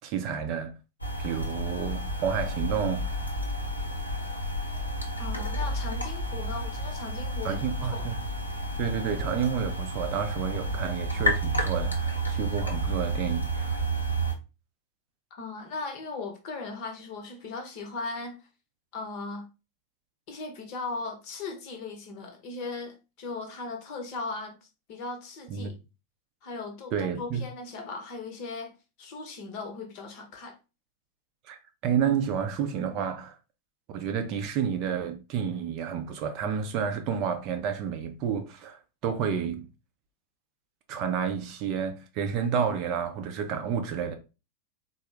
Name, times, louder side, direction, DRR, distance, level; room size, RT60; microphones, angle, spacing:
voice 1, 0.0-0.7 1.2-3.1 7.4-8.2 8.8-13.9 25.5-25.8 26.9-27.4 31.5-31.6 31.8-33.4 33.9-39.7 40.9-44.1, right 7 dB, 40° right, 0.5 m, -30 dB
sound 1, 1.0-14.3, right 1 dB, 85° left, 0.6 m, -31 dB
voice 2, 5.2-7.6 7.9-8.1 15.3-18.4 18.9-19.5 20.3-24.6 24.9-25.7 26.4-28.7 29.0-30.6, left 3 dB, 45° left, 0.8 m, -38 dB
3.8 x 2.0 x 3.2 m
figure-of-eight pair, 90°, 0 cm